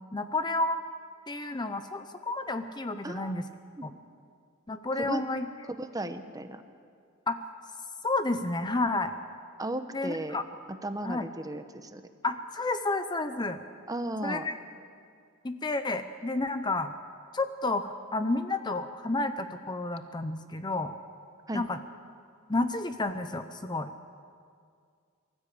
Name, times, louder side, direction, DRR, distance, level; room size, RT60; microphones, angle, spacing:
voice 1, 0.1-0.8 1.3-3.4 3.8-3.9 4.7-5.5 7.3-7.4 8.0-9.1 9.9-10.4 11.0-11.3 12.2-13.6 14.2-14.6 15.4-16.9 17.3-20.9 21.5-21.8 22.5-23.9, left 2 dB, 20° left, 9 dB, 0.6 m, -30 dB
voice 2, 3.0-3.3 3.8-3.9 5.0-5.2 5.7-6.6 9.6-10.4 10.8-12.0 13.9-14.5 21.5-21.6, right 1 dB, 15° right, 8 dB, 0.9 m, -35 dB
23.5 x 13.5 x 8.5 m, 2.3 s
head